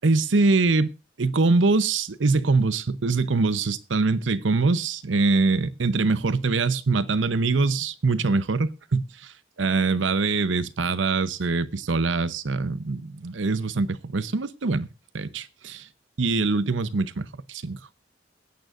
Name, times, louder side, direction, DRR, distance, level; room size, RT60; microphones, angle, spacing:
voice 1, 0.0-0.9 1.2-9.3 9.6-14.9 15.1-15.9 16.2-17.8, right 3 dB, 85° right, 0.8 m, -23 dB
22.0 x 9.1 x 2.5 m
head